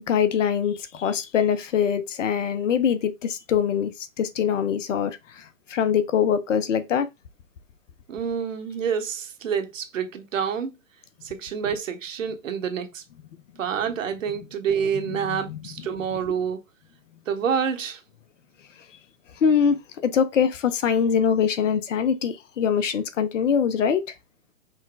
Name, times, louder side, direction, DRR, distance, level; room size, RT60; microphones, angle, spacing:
voice 1, 0.0-3.9 4.2-7.1 15.1-15.6 19.4-19.8 20.0-24.1, left 7 dB, 60° left, 0.9 m, -23 dB
voice 2, 8.1-10.7 11.2-13.0 13.6-16.6 17.3-18.0, right 7 dB, 65° right, 1.3 m, -28 dB
5.3 x 2.3 x 3.9 m
hypercardioid pair, 135°, 42 cm